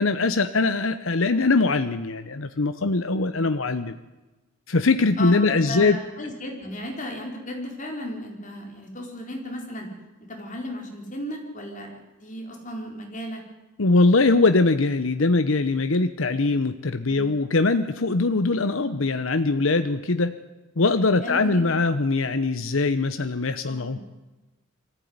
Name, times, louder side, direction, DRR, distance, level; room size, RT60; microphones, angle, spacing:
voice 1, 0.0-3.9 4.7-6.0 13.8-20.3 20.8-24.0, left 3 dB, 75° left, 10 dB, 0.9 m, -22 dB
voice 2, 5.2-9.9 10.3-13.4 17.1-17.3 21.2-21.6 23.6-24.0, left 1 dB, 40° left, 1 dB, 4.6 m, -35 dB
23.5 x 15.0 x 9.6 m, 1.1 s
head